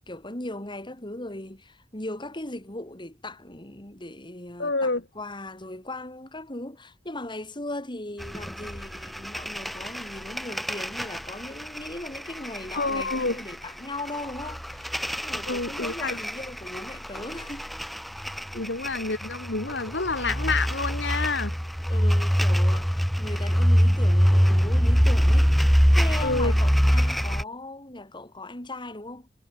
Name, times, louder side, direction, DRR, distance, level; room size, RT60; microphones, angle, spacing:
voice 1, 0.1-17.7 18.5-18.7 21.9-25.5 25.9-29.3, left 2 dB, 25° left, 3.8 m, -38 dB
voice 2, 4.6-5.0 12.8-13.4 15.5-16.2 18.5-21.5 26.2-26.6, left 3 dB, 70° left, 2.6 m, -28 dB
sound 1, 8.2-27.4, equal, ahead, 0.8 m, -24 dB
head